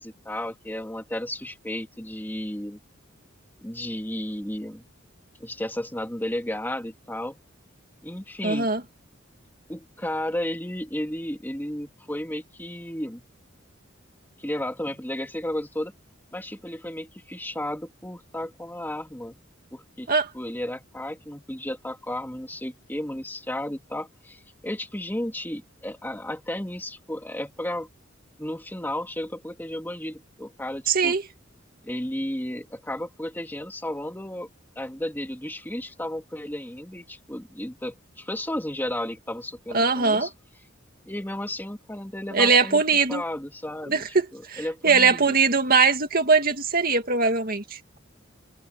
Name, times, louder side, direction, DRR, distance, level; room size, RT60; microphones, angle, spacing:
voice 1, 0.0-2.8 3.6-4.9 5.4-7.4 8.0-8.7 9.7-13.2 14.4-15.9 16.3-19.4 19.7-27.9 28.4-31.2 31.8-34.5 34.8-40.3 41.1-42.8 43.1-45.4, left 1 dB, 10° left, 2.7 m, -33 dB
voice 2, 8.4-8.8 20.1-20.3 30.9-31.2 39.7-40.3 42.3-43.2 43.9-47.8, right 4 dB, 45° right, 2.3 m, -21 dB
head